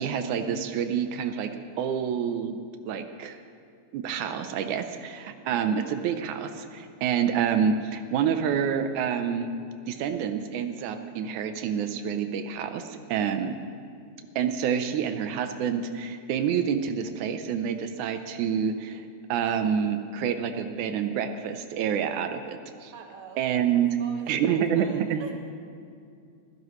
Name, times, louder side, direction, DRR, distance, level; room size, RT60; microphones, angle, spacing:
voice 1, 0.0-1.5 1.8-2.6 2.9-3.4 3.9-9.6 9.9-13.6 14.4-22.9 23.4-23.9 24.3-25.2, right 8 dB, 90° right, 7 dB, 2.2 m, -28 dB
voice 2, 22.9-23.4 24.0-25.6, right 5 dB, 50° right, 2 dB, 2.1 m, -45 dB
24.0 x 16.0 x 3.2 m, 2.4 s
omnidirectional pair, 3.4 m